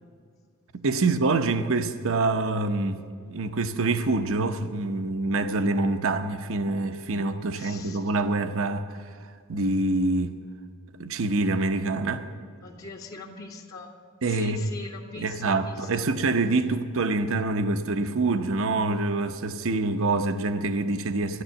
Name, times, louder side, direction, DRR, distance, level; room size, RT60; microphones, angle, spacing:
voice 1, 0.8-9.0 9.5-10.4 11.0-12.2 14.2-14.6 15.2-21.4, right 3 dB, 65° right, 8 dB, 0.8 m, -26 dB
voice 2, 7.5-8.0 12.6-13.9 14.3-16.1, left 3 dB, 75° left, -8 dB, 2.0 m, -41 dB
15.0 x 11.0 x 7.0 m, 2.1 s
head